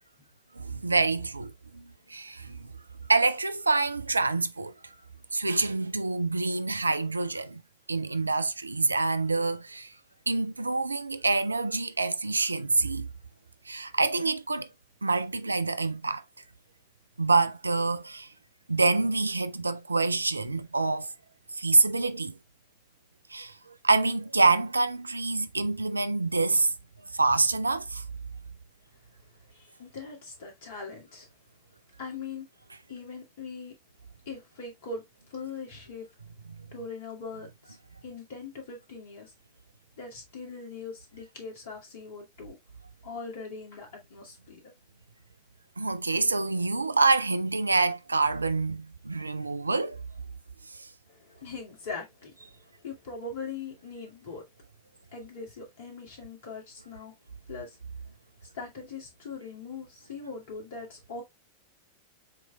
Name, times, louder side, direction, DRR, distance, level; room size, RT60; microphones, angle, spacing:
voice 1, 0.6-2.7 3.1-4.7 5.3-7.6 7.9-9.9 10.3-13.1 13.7-14.7 15.0-16.2 17.2-18.3 18.7-21.1 21.5-22.3 23.3-26.7 27.1-28.0 36.5-36.6 45.8-50.0 50.7-50.9, right 3 dB, 80° right, 0.4 m, -26 dB
voice 2, 29.5-31.3 32.0-32.5 32.9-33.7 34.3-35.0 35.3-36.1 36.7-37.8 38.0-39.3 40.0-42.6 43.0-44.7 51.1-54.4 55.1-57.1 57.5-57.8 58.4-61.2, left 4 dB, 50° left, 2.1 m, -41 dB
7.4 x 3.1 x 2.3 m
figure-of-eight pair, 90°, 0 cm